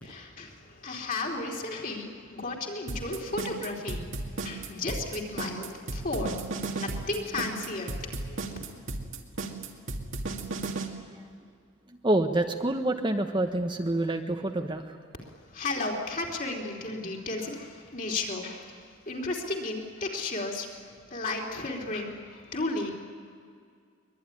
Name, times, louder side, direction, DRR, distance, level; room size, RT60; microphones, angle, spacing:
voice 1, 0.0-6.4 6.6-8.6 15.2-22.9, left 2 dB, 45° left, 0 dB, 3.4 m, -34 dB
sound 1, 2.9-10.9, right 3 dB, 70° right, 2.3 m, -34 dB
voice 2, 12.0-15.0, right 1 dB, 25° right, 5 dB, 1.1 m, -27 dB
23.0 x 22.0 x 10.0 m, 2.2 s
head